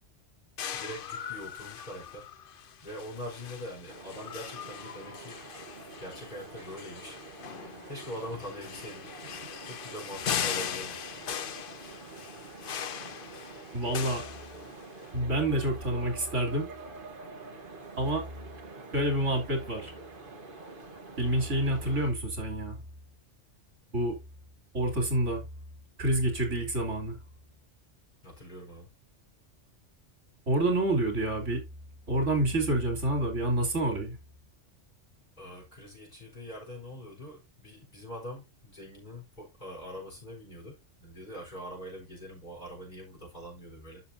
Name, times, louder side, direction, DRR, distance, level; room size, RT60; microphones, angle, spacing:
sound 1, 0.6-15.0, left 8 dB, 55° left, 0.7 m, -39 dB
voice 1, 0.7-2.3 2.8-5.5 6.0-7.2 7.9-9.1 9.6-11.0 28.2-28.9 35.4-44.0, equal, 40° left, 4.3 m, -43 dB
sound 2, 3.9-22.1, right 3 dB, 45° right, 1.5 m, -47 dB
voice 2, 13.7-14.3 15.1-16.7 18.0-18.3 18.9-19.9 21.2-22.8 23.9-24.2 24.7-25.4 26.0-27.2 30.5-31.6 32.1-34.2, right 1 dB, 90° right, 3.3 m, -28 dB
12.0 x 6.1 x 2.7 m
omnidirectional pair, 1.2 m